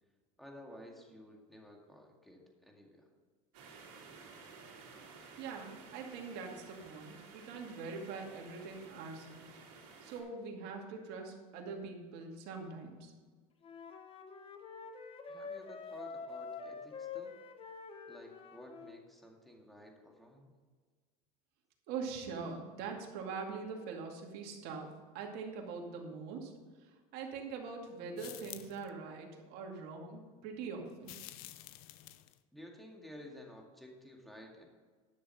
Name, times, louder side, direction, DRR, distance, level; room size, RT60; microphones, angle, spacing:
voice 1, 0.4-3.1 15.2-17.3 18.1-20.5 32.5-34.7, equal, ahead, 1 dB, 2.1 m, -53 dB
sound 1, 3.5-10.2, right 4 dB, 80° right, 2.9 m, -54 dB
voice 2, 5.4-9.6 10.0-13.1 21.9-26.5 26.8-31.1, right 4 dB, 60° right, 1 dB, 2.2 m, -43 dB
Wind instrument woodwind instrument, 13.6-19.0, left 5 dB, 30° left, 1.0 m, -46 dB
sound 2, 28.2-28.9 31.0-32.4, left 14 dB, 75° left, 0.6 m, -49 dB
11.0 x 6.7 x 5.7 m, 1.5 s
supercardioid pair, 115°, 18 cm